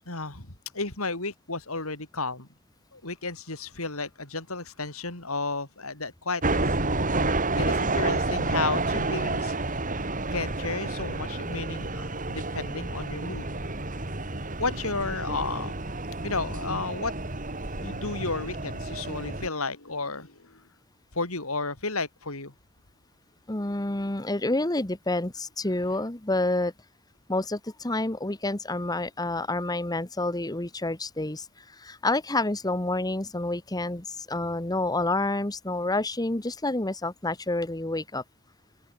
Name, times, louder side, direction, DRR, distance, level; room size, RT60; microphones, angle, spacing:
voice 1, 0.1-0.5 0.7-2.5 2.9-6.8 7.5-9.8 10.3-13.4 14.6-15.8 16.2-17.1 17.8-20.6 21.1-22.5, left 3 dB, 70° left, 4.9 m, -33 dB
sound 1, 6.4-19.5, right 2 dB, 40° right, 3.8 m, -30 dB
voice 2, 23.5-26.7 27.3-31.5 31.8-38.2, left 2 dB, 15° left, 1.3 m, -28 dB
head